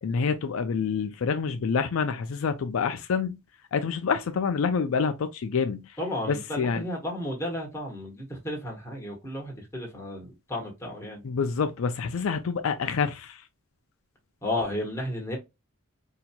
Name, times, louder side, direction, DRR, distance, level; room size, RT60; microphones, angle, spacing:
voice 1, 0.0-3.4 3.7-6.0 6.3-6.8 11.2-13.4, left 5 dB, 70° left, 0.4 m, -27 dB
voice 2, 6.0-11.2 14.4-15.4, left 1 dB, 15° left, 1.2 m, -33 dB
4.2 x 2.8 x 2.2 m
head